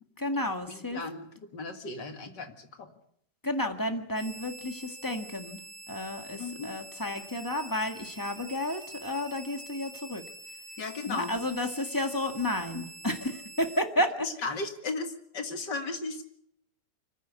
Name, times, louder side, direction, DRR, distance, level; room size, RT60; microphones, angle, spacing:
voice 1, 0.2-1.0 3.4-5.6 5.9-10.2 11.1-14.1, left 1 dB, 10° left, 5 dB, 1.8 m, -31 dB
voice 2, 0.7-2.9 6.4-6.7 10.8-11.3 14.2-16.2, left 3 dB, 75° left, 6 dB, 2.7 m, -36 dB
sound 1, 4.1-13.8, right 1 dB, 45° right, 3.7 m, -46 dB
25.0 x 14.0 x 8.3 m, 0.71 s
omnidirectional pair, 1.9 m